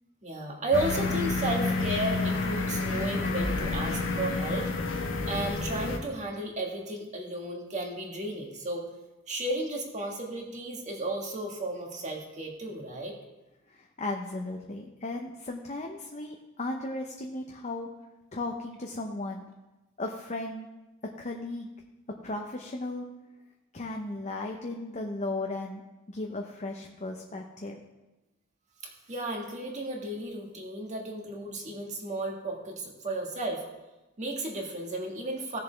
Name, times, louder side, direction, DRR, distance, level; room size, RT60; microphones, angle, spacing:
voice 1, 0.2-4.7 5.3-8.8 9.3-13.1 28.8-33.6 34.2-35.6, right 2 dB, 35° right, 0 dB, 1.8 m, -33 dB
sound 1, 0.7-6.0, left 3 dB, 65° left, 1.2 m, -29 dB
voice 2, 13.7-17.9 18.3-19.4 20.0-20.7 21.2-21.7 22.2-23.1 23.7-25.8 26.1-27.8, left 2 dB, 35° left, 1 dB, 0.8 m, -36 dB
16.5 x 6.8 x 3.4 m, 1.1 s
head